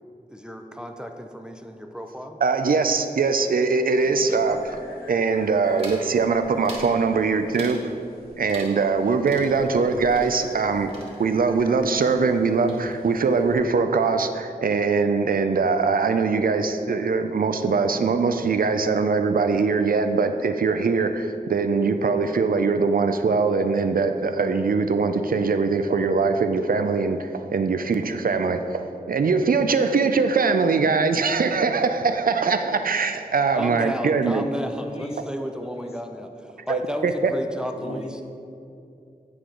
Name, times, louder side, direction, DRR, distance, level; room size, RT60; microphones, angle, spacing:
voice 1, 0.3-2.4 33.5-38.2, equal, 5° right, 5 dB, 0.5 m, -33 dB
voice 2, 2.4-4.8 5.1-7.9 8.4-10.9 11.2-34.4 36.7-37.3, right 4 dB, 70° right, 8 dB, 0.4 m, -22 dB
sound 1, 4.0-13.6, left 1 dB, 85° left, 1.2 m, -46 dB
sound 2, 5.8-6.1 6.6-7.0 7.5-7.9 8.5-9.0 9.3-11.6 11.8-12.4 12.7-13.2, right 1 dB, 40° right, 1.3 m, -43 dB
voice 3, 34.7-35.2 35.6-35.9 37.7-38.2, left 1 dB, 40° left, 1 dB, 0.9 m, -37 dB
8.7 x 4.7 x 3.8 m, 2.6 s
wide cardioid pair, 60°, 15 cm